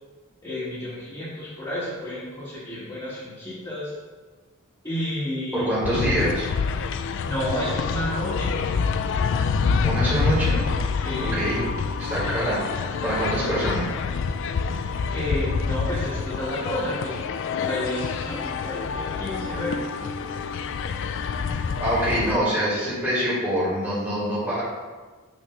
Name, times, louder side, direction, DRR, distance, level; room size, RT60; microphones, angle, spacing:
voice 1, 0.4-3.9 4.8-5.7 7.2-8.8 10.9-11.4 15.1-17.2 17.6-20.1, left 1 dB, 20° left, -12 dB, 1.7 m, -31 dB
voice 2, 5.5-6.5 9.8-10.6 11.2-11.6 12.0-13.9 21.8-24.6, right 1 dB, 10° right, -9 dB, 1.7 m, -25 dB
sound 1, 5.8-22.4, left 5 dB, 60° left, 0.3 m, -27 dB
6.2 x 3.2 x 5.9 m, 1.4 s
head